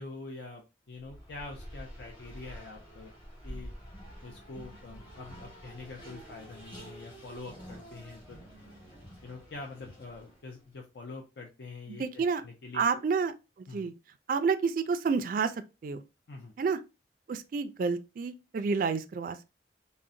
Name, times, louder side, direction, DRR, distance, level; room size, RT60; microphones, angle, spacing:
voice 1, 0.0-3.1 3.4-3.7 4.2-8.7 9.2-13.0 13.7-13.9 16.3-16.5, left 3 dB, 70° left, 0.5 m, -45 dB
Race car auto racing, 1.0-10.6, equal, 30° left, 1.2 m, -48 dB
voice 2, 12.0-12.4 12.7-13.3 13.7-13.9 14.3-15.5 15.8-16.0 16.6-16.8 17.3-19.4, right 5 dB, 50° right, 0.3 m, -29 dB
3.8 x 2.1 x 2.5 m
head